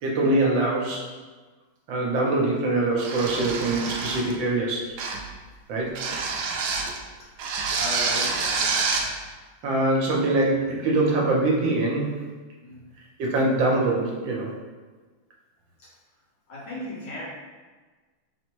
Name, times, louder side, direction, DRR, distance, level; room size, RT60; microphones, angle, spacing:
voice 1, 0.0-1.1 1.9-4.9 5.7-5.9 9.6-12.1 13.2-14.5, right 2 dB, 65° right, -2 dB, 1.4 m, -23 dB
sound 1, 3.0-4.4 5.0-5.3 6.0-7.0 7.4-9.1, right 4 dB, 90° right, 0.9 m, -27 dB
voice 2, 7.2-8.6 12.6-12.9 15.8-15.9 16.5-17.2, left 1 dB, 60° left, -7 dB, 1.7 m, -37 dB
4.1 x 2.1 x 4.5 m, 1.4 s
omnidirectional pair, 2.4 m